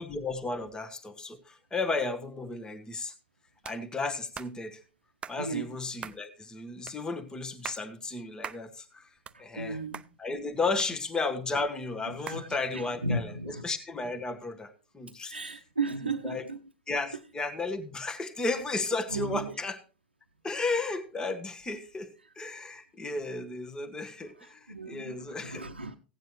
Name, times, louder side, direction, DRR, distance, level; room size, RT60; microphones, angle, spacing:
voice 1, 0.0-3.1 3.6-4.8 5.3-9.1 9.4-9.8 10.2-15.4 16.0-16.4 16.9-19.8 20.4-22.1 22.4-25.7, left 3 dB, 15° left, 1.1 m, -34 dB
sound 1, 3.6-3.8 4.3-4.5 5.2-5.4 6.0-6.2 6.9-7.0 7.5-7.8 8.4-8.6 9.0-9.7 9.9-10.1 10.8-11.4 12.3-12.4, right 7 dB, 20° right, 0.5 m, -41 dB
voice 2, 5.4-5.7 7.0-7.1 9.3-10.0 12.2-13.6 15.3-16.6 19.1-19.5 24.7-25.9, right 3 dB, 85° right, 0.6 m, -35 dB
16.0 x 9.1 x 3.1 m
figure-of-eight pair, 85°, 6 cm